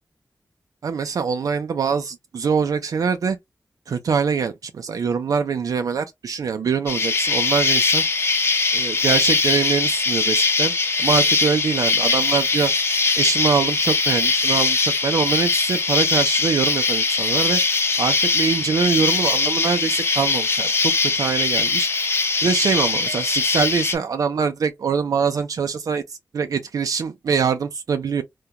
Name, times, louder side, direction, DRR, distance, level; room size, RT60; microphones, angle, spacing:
voice 1, 0.8-3.4 3.9-8.0 8.7-10.7 11.0-12.7 13.2-17.6 18.0-21.9 22.4-28.2, right 6 dB, 90° right, 0.4 m, -24 dB
Insect, 6.9-23.9, left 4 dB, 45° left, 0.7 m, -21 dB
3.6 x 2.1 x 2.8 m
wide cardioid pair, 130°, 6 cm